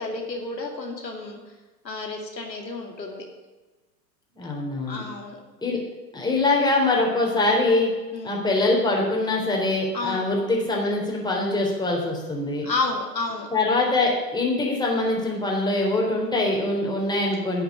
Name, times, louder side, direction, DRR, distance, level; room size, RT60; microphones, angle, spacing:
voice 1, 0.0-1.4 1.8-3.3 4.9-5.4 8.1-8.4 9.9-10.3 12.6-13.5, left 3 dB, 85° left, 2 dB, 2.6 m, -30 dB
voice 2, 4.4-5.0 5.6-5.8 6.1-7.9 8.2-12.7 13.5-17.6, left 2 dB, 10° left, -2 dB, 3.8 m, -23 dB
10.5 x 7.4 x 9.6 m, 1.2 s
figure-of-eight pair, 100°, 49 cm